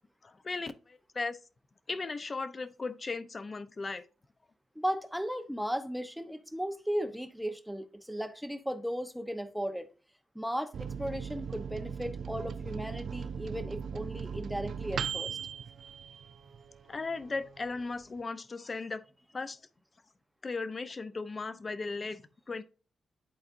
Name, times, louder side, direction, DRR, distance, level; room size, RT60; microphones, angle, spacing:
voice 1, 0.2-1.4 1.9-4.0 16.9-19.0 19.3-19.6 20.4-22.6, left 3 dB, 35° left, 0.7 m, -37 dB
voice 2, 4.7-9.9 10.3-15.4, equal, ahead, 0.9 m, -36 dB
Microwave oven, 10.7-16.8 17.2-17.3 17.6-18.2, right 7 dB, 70° right, 0.3 m, -38 dB
sound 1, 15.3-19.4, right 5 dB, 45° right, 2.6 m, -62 dB
11.0 x 4.1 x 2.6 m
cardioid pair, 95°, 0 cm